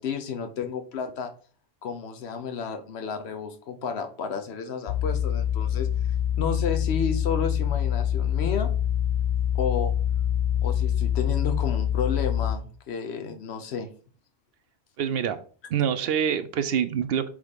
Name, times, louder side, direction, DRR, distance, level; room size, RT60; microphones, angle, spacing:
voice 1, 0.0-1.3 1.8-5.9 6.4-8.7 9.5-9.9 10.6-13.9, left 6 dB, 85° left, 7 dB, 1.0 m, -31 dB
sound 1, 4.9-12.6, left 10 dB, 65° left, 0.7 m, -25 dB
voice 2, 15.0-15.4 15.7-17.3, right 8 dB, 75° right, 11 dB, 0.8 m, -25 dB
6.2 x 3.6 x 5.0 m, 0.41 s
omnidirectional pair, 1.1 m